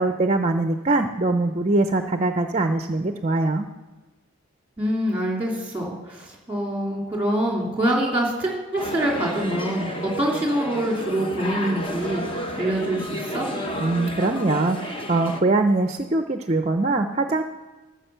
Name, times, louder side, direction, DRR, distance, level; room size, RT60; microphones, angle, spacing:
voice 1, 0.0-3.7 13.8-17.4, right 2 dB, 30° right, 7 dB, 0.5 m, -22 dB
voice 2, 4.8-13.5, right 1 dB, 5° right, -2 dB, 2.9 m, -25 dB
sound 1, 8.8-15.4, equal, 25° left, 0.9 m, -31 dB
13.5 x 6.3 x 6.7 m, 1.2 s
head